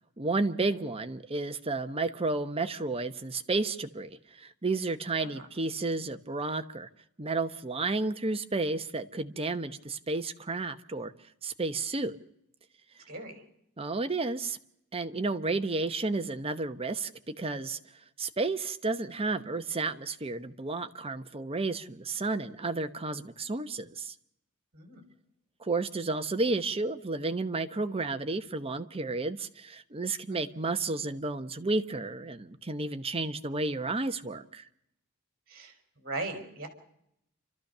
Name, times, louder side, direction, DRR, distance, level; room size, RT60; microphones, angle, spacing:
voice 1, 0.2-6.9 7.2-11.1 11.4-12.2 13.8-14.6 14.9-17.1 17.4-17.8 18.2-24.1 25.6-34.7, right 3 dB, 25° right, 1.0 m, -32 dB
voice 2, 13.1-13.4 24.7-25.0 30.3-30.5 35.5-36.7, right 2 dB, 45° right, 4.4 m, -39 dB
30.0 x 13.0 x 6.7 m
head